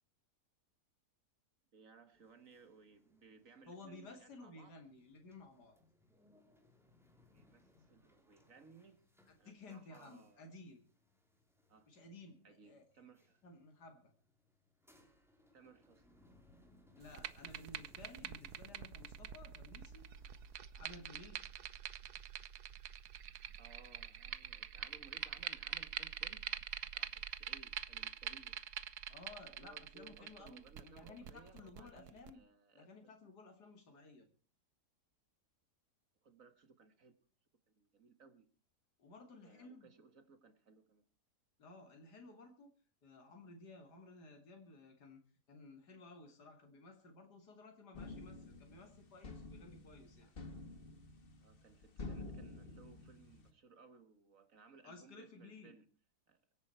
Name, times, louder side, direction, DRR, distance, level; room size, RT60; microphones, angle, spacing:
voice 1, 1.7-4.8 7.3-9.0 9.4-10.5 11.7-11.9 12.4-13.4 15.5-16.2 23.6-26.5 26.9-28.7 29.4-33.1 36.2-37.1 37.8-38.5 39.4-41.1 51.4-55.9 56.3-56.4, right 5 dB, 55° right, 2.0 m, -62 dB
sound 1, 2.1-20.6, left 1 dB, ahead, 3.3 m, -70 dB
voice 2, 3.7-5.8 9.3-10.8 11.9-12.8 13.4-14.1 17.0-20.0 20.7-21.4 29.1-32.4 32.7-34.3 39.0-39.9 41.6-42.7 43.0-45.2 45.5-50.4 54.8-55.7, left 3 dB, 75° left, 3.0 m, -56 dB
sound 2, 17.0-32.3, right 10 dB, 70° right, 1.4 m, -46 dB
sound 3, 47.9-53.5, left 3 dB, 35° left, 1.5 m, -50 dB
24.0 x 9.6 x 4.5 m
omnidirectional pair, 1.8 m